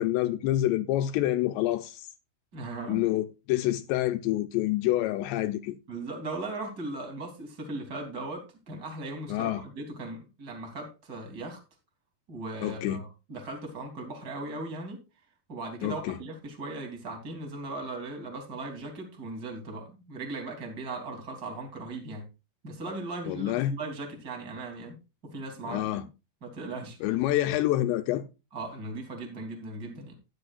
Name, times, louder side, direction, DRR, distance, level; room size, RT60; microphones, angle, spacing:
voice 1, 0.0-2.1 2.9-5.8 9.3-9.6 12.6-13.0 15.8-16.2 23.3-23.7 25.7-26.0 27.0-28.2, left 14 dB, 80° left, 2.7 m, -27 dB
voice 2, 2.5-3.0 5.9-11.6 12.3-15.0 15.5-22.2 22.6-24.9 25.3-26.1 26.4-27.0 28.5-30.1, right 2 dB, 25° right, 2.8 m, -38 dB
14.5 x 10.5 x 2.4 m
omnidirectional pair, 5.2 m